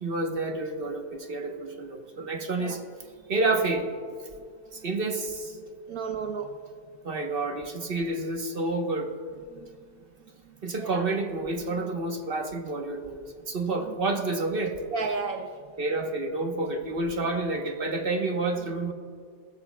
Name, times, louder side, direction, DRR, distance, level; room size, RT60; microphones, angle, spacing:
voice 1, 0.0-2.8 3.3-3.9 4.7-5.6 7.0-9.1 10.6-14.8 15.8-18.9, right 2 dB, 40° right, 4 dB, 0.9 m, -29 dB
voice 2, 5.9-6.6 10.8-11.1 11.7-11.8 13.7-13.9 14.9-15.5 17.3-17.4, right 4 dB, 65° right, 6 dB, 1.0 m, -33 dB
20.5 x 13.0 x 2.2 m, 2.2 s
omnidirectional pair, 2.0 m